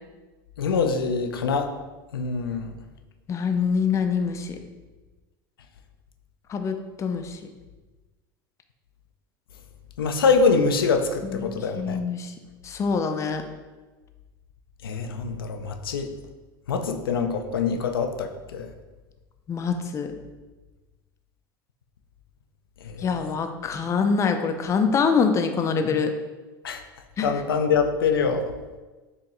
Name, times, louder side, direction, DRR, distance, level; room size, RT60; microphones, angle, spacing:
voice 1, 0.6-1.7 2.1-2.7 10.0-12.0 14.8-16.1 16.7-18.7 22.9-23.2 26.6-26.8 27.2-28.5, left 5 dB, 90° left, 5 dB, 0.4 m, -24 dB
voice 2, 3.3-4.6 6.5-7.4 11.2-11.5 11.8-12.3 12.6-13.4 19.5-20.1 23.0-26.1 27.2-27.3, left 5 dB, 25° left, 6 dB, 0.4 m, -25 dB
4.7 x 2.8 x 3.0 m, 1.2 s
hypercardioid pair, 90°, 12 cm